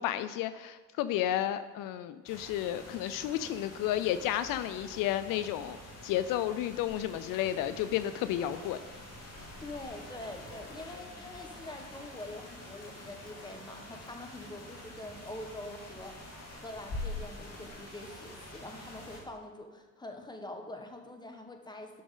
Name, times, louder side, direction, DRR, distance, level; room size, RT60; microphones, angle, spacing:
voice 1, 0.0-5.8 6.0-8.8, left 12 dB, 80° left, 12 dB, 0.5 m, -32 dB
sound 1, 2.3-19.2, left 2 dB, 50° left, 2.4 m, -46 dB
voice 2, 9.4-22.0, left 1 dB, 15° left, 4 dB, 1.4 m, -45 dB
11.0 x 6.1 x 3.9 m, 1.4 s
supercardioid pair, 75°, 33 cm